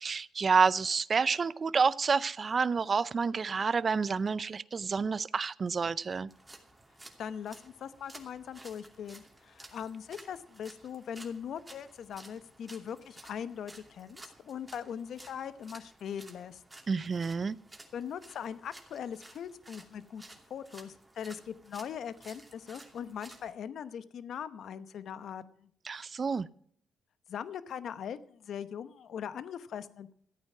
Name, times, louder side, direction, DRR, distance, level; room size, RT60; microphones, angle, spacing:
voice 1, 0.0-6.3 16.9-17.6 25.9-26.5, right 5 dB, 40° right, 19 dB, 0.5 m, -29 dB
sound 1, 6.3-23.5, right 2 dB, 10° right, 2.7 m, -54 dB
voice 2, 7.2-16.6 17.9-20.2 20.5-25.7 27.3-30.1, left 8 dB, 65° left, 14 dB, 0.9 m, -41 dB
14.0 x 9.0 x 6.0 m, 0.62 s
cardioid pair, 90°, 0 cm